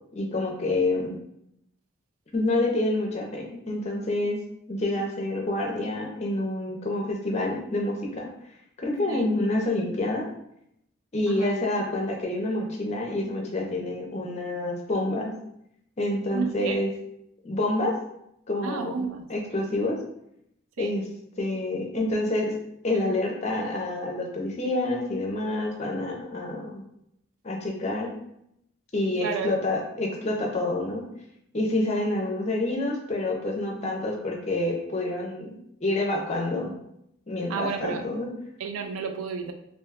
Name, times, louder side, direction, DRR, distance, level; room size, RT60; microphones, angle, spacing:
voice 1, 0.1-1.2 2.3-4.4 4.7-8.3 8.8-10.3 11.1-15.3 16.0-16.9 17.4-18.0 18.5-19.0 19.3-20.0 20.8-21.0 21.4-22.5 22.8-26.8 27.4-28.1 28.9-31.0 31.5-35.5 35.8-36.7 37.3-38.3, left 2 dB, 30° left, 0 dB, 0.5 m, -27 dB
voice 2, 16.3-16.8 18.6-19.3 20.8-20.9 29.2-29.6 33.8-33.9 37.5-38.1 38.6-39.5, right 5 dB, 90° right, 7 dB, 0.4 m, -31 dB
2.6 x 2.2 x 3.4 m, 0.78 s
head